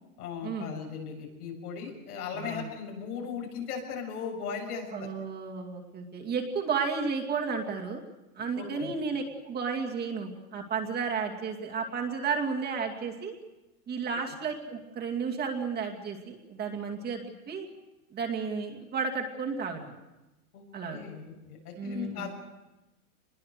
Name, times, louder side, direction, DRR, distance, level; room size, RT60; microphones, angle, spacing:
voice 1, 0.2-4.9 8.6-8.9 20.5-20.6 20.9-22.3, left 6 dB, 85° left, 1 dB, 6.9 m, -37 dB
voice 2, 2.3-2.7 4.9-8.0 8.4-13.3 13.9-17.2 17.5-17.7 18.1-19.9 20.7-21.0 21.8-22.3, right 5 dB, 20° right, 1 dB, 2.4 m, -33 dB
25.0 x 21.0 x 6.6 m, 1.0 s
supercardioid pair, 145°, 44 cm